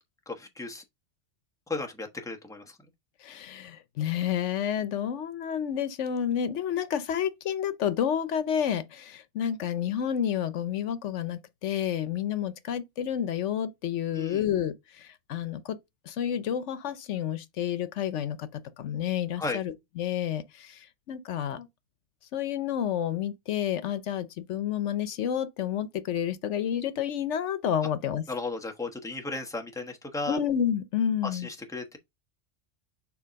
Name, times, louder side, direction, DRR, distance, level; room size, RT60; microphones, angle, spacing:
voice 1, 0.3-0.8 1.7-2.8 14.1-14.4 19.3-19.6 28.3-30.4 31.2-32.0, left 3 dB, 5° left, 1.0 m, -35 dB
voice 2, 3.2-15.8 16.1-18.5 18.8-21.7 22.3-28.2 30.3-31.5, left 9 dB, 80° left, 1.1 m, -30 dB
7.0 x 2.8 x 5.1 m
omnidirectional pair, 1.2 m